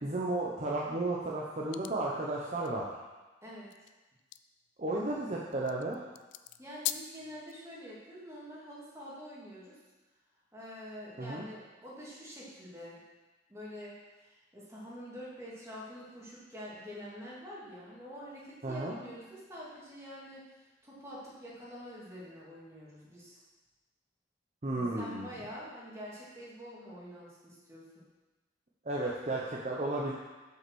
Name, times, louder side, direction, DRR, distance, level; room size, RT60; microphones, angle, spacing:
voice 1, 0.0-2.9 4.8-6.0 11.2-11.5 18.6-18.9 24.6-25.4 28.8-30.1, right 2 dB, 40° right, -4 dB, 0.9 m, -33 dB
sound 1, 1.7-1.9 2.6-2.7 3.7-7.5, left 13 dB, 80° left, 0.4 m, -41 dB
voice 2, 3.4-3.7 6.6-9.8 10.5-13.0 13.5-14.0 14.2-20.4 20.8-23.4 24.7-28.1, equal, 15° right, -7 dB, 2.5 m, -46 dB
7.9 x 5.6 x 6.3 m, 1.2 s
head